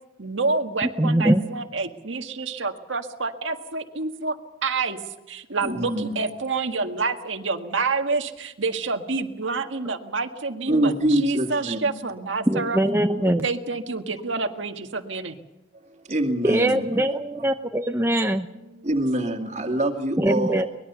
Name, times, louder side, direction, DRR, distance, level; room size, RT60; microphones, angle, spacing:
voice 1, 0.2-4.4 4.6-5.0 5.3-12.8 13.2-15.4 18.7-18.9, right 4 dB, 85° right, 5 dB, 1.7 m, -28 dB
voice 2, 1.0-1.4 12.5-13.5 16.4-18.5 20.2-20.7, right 1 dB, 10° right, 5 dB, 0.8 m, -22 dB
voice 3, 5.6-6.1 10.7-11.9 15.8-16.8 18.8-20.7, right 1 dB, 35° right, 4 dB, 2.3 m, -25 dB
24.0 x 20.5 x 7.0 m, 0.96 s
head